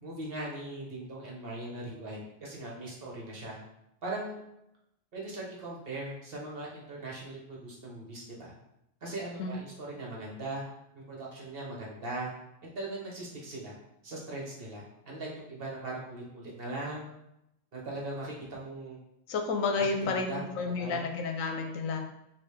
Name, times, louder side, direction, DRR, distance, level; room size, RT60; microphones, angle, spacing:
voice 1, 0.0-3.6 4.0-4.4 5.1-8.5 9.0-10.6 10.9-12.3 12.7-13.7 14.0-17.1 17.7-19.0 19.7-21.0, right 2 dB, 50° right, -3 dB, 1.1 m, -39 dB
voice 2, 19.3-22.0, left 4 dB, 75° left, 4 dB, 1.0 m, -31 dB
5.3 x 2.7 x 3.2 m, 0.83 s
omnidirectional pair, 1.4 m